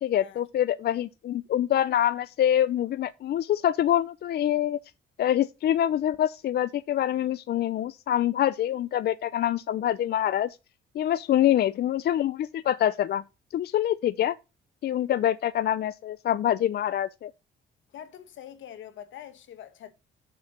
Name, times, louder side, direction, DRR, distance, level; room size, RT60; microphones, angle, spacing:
voice 1, 0.0-4.8 5.2-10.6 11.0-13.2 13.5-14.4 14.8-17.3, left 11 dB, 55° left, 0.4 m, -25 dB
voice 2, 17.9-19.9, left 10 dB, 75° left, 1.2 m, -44 dB
6.9 x 4.5 x 5.9 m
cardioid pair, 90°, 20 cm